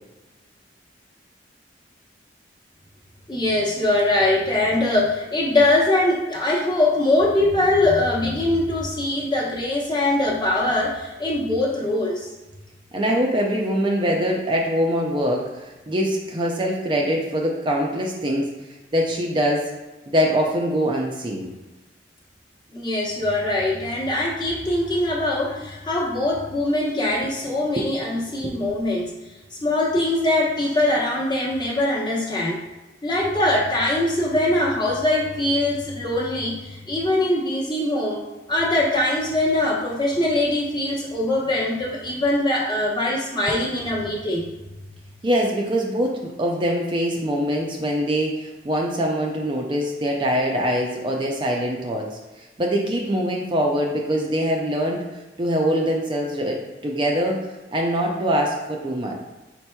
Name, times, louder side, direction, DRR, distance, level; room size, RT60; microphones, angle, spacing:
voice 1, 3.3-12.3 22.7-29.1 29.6-32.6 33.0-38.2 38.5-44.5, left 1 dB, 25° left, -4 dB, 0.9 m, -22 dB
voice 2, 12.9-18.6 18.9-19.7 20.1-21.5 27.8-27.9 28.4-28.5 45.2-55.0 55.4-57.4 57.7-59.1, equal, 25° right, -1 dB, 0.4 m, -23 dB
5.3 x 4.3 x 2.2 m, 1.1 s
head